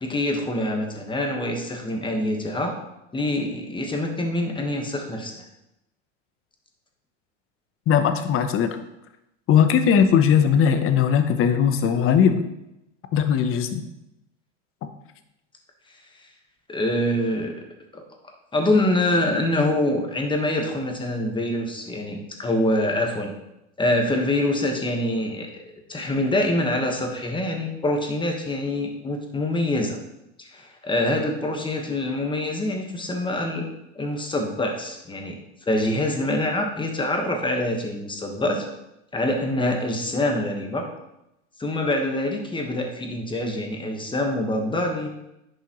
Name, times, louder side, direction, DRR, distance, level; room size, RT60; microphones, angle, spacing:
voice 1, 0.0-2.7 3.1-5.4 16.7-17.5 17.9-18.0 18.5-23.3 23.8-25.6 25.9-30.0 30.4-33.6 33.9-35.4 35.7-38.6 39.1-40.9 41.6-45.1, left 1 dB, 15° left, 2 dB, 1.4 m, -25 dB
voice 2, 7.9-8.8 9.5-12.4 13.1-13.8, left 8 dB, 35° left, 9 dB, 0.9 m, -19 dB
10.5 x 5.4 x 3.1 m, 0.89 s
hypercardioid pair, 110°, 36 cm